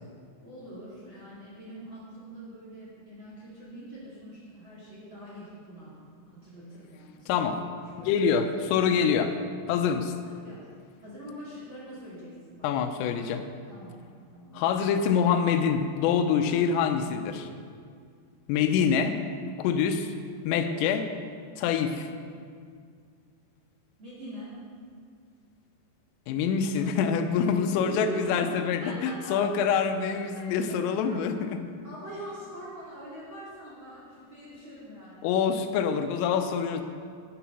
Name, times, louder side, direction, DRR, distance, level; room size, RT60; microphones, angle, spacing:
voice 1, 0.4-5.9 6.2-7.8 8.3-8.8 10.3-10.6 11.0-12.7 13.7-13.9 14.3-14.6 24.0-24.5 26.8-27.1 27.7-28.5 28.8-29.4 29.7-31.2 31.6-35.3, right 1 dB, 35° right, -7 dB, 2.3 m, -43 dB
voice 2, 7.3-7.6 8.0-9.4 9.7-10.1 12.6-13.5 14.5-17.5 18.5-19.2 19.6-20.1 20.4-21.1 21.6-22.1 26.3-31.3 35.2-36.8, left 7 dB, 90° left, 8 dB, 3.4 m, -25 dB
10.5 x 10.0 x 5.8 m, 2.1 s
omnidirectional pair, 5.7 m